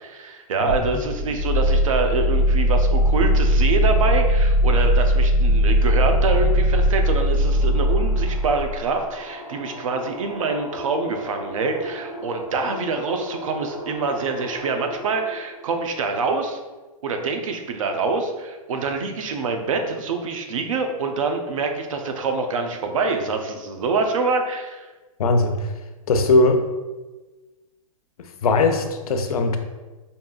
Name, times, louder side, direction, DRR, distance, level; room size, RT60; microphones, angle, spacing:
voice 1, 0.0-16.6 17.0-24.9, right 4 dB, 65° right, 5 dB, 0.6 m, -25 dB
sound 1, 0.7-8.9, equal, 40° right, 0.9 m, -19 dB
sound 2, 7.3-15.6, equal, 5° right, 0.7 m, -37 dB
voice 2, 25.2-25.7 26.1-26.6 28.2-29.6, left 2 dB, 80° left, 6 dB, 0.6 m, -19 dB
5.2 x 2.7 x 2.3 m, 1.2 s
hypercardioid pair, 165°, 18 cm